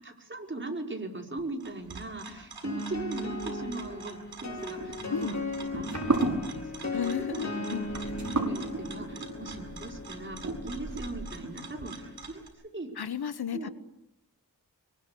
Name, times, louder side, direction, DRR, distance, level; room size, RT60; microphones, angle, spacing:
voice 1, 0.0-5.4 5.7-7.6 8.1-12.4 12.7-13.0 13.5-13.7, right 2 dB, 30° right, 2 dB, 4.9 m, -39 dB
sound 1, 1.6-12.5, right 4 dB, 85° right, 7.8 m, -47 dB
sound 2, 2.6-12.2, left 2 dB, 45° left, 4.1 m, -38 dB
sound 3, 4.5-11.5, right 2 dB, 50° right, 6.2 m, -34 dB
voice 2, 6.9-7.9 13.0-13.7, left 8 dB, 90° left, 13 dB, 1.3 m, -33 dB
24.5 x 23.0 x 8.5 m, 0.82 s
wide cardioid pair, 105°, 37 cm